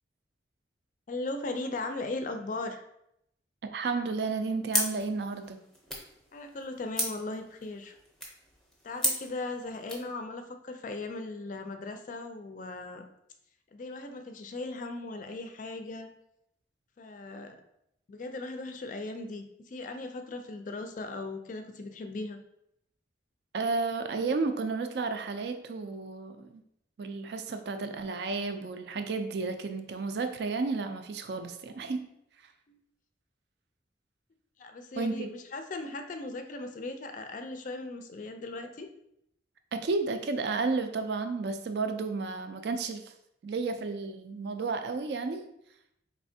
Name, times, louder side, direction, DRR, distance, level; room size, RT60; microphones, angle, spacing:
voice 1, 1.1-2.9 6.3-8.0 8.8-13.1 13.7-16.1 17.0-17.6 18.1-22.4 32.7-32.8 34.6-38.9, left 2 dB, 45° left, 6 dB, 0.4 m, -38 dB
voice 2, 3.7-5.6 23.5-26.6 27.0-32.0 35.0-35.3 39.7-43.1 43.4-45.4, right 4 dB, 60° right, 7 dB, 0.4 m, -32 dB
sound 1, 4.7-10.1, equal, ahead, 0.7 m, -35 dB
4.2 x 3.1 x 2.7 m, 0.77 s
head